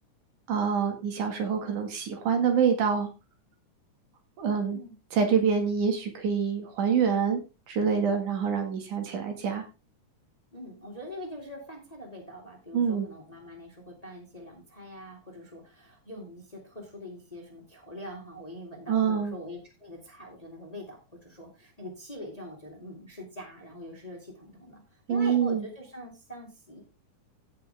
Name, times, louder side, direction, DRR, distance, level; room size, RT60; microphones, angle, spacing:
voice 1, 0.5-3.1 4.4-4.8 5.1-7.4 7.7-9.6 12.7-13.1 18.9-19.3 25.1-25.6, right 6 dB, 65° right, 4 dB, 3.3 m, -26 dB
voice 2, 10.5-26.8, left 1 dB, 15° left, 0 dB, 2.1 m, -43 dB
16.5 x 5.7 x 3.5 m, 0.28 s
omnidirectional pair, 3.9 m